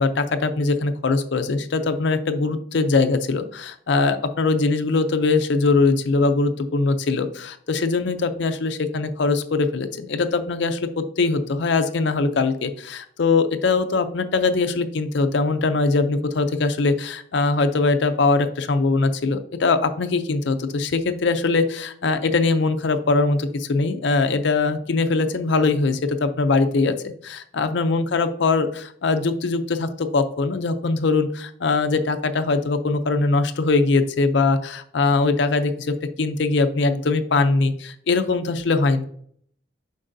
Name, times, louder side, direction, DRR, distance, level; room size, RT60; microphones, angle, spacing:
voice 1, 0.0-39.0, left 3 dB, 60° left, 9 dB, 0.5 m, -21 dB
7.5 x 5.3 x 2.6 m, 0.63 s
head